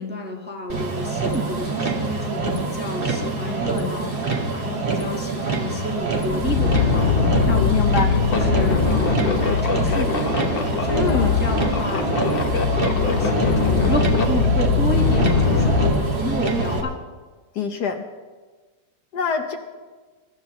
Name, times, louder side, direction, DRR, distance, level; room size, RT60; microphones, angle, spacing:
voice 1, 0.0-16.9, left 1 dB, 5° right, -1 dB, 1.1 m, -30 dB
Motor vehicle (road), 0.7-16.8, right 3 dB, 30° right, 1.5 m, -25 dB
sound 1, 6.0-15.9, left 5 dB, 40° left, 0.9 m, -21 dB
voice 2, 7.7-8.1 10.9-11.4 17.5-18.0 19.1-19.6, left 6 dB, 65° left, 5 dB, 1.3 m, -24 dB
22.0 x 11.5 x 3.0 m, 1.3 s
omnidirectional pair, 2.1 m